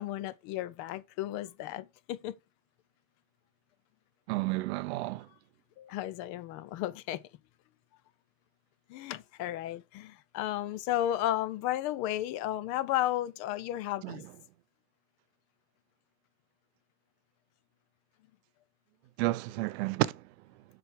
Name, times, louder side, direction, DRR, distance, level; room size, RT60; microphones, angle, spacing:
voice 1, 0.0-2.3 5.8-7.2 8.9-14.2, left 13 dB, 40° left, 0.6 m, -33 dB
voice 2, 4.3-5.3 14.0-14.2 19.2-20.2, right 19 dB, 50° right, 0.6 m, -31 dB
6.7 x 4.4 x 3.7 m
hypercardioid pair, 95°, 42 cm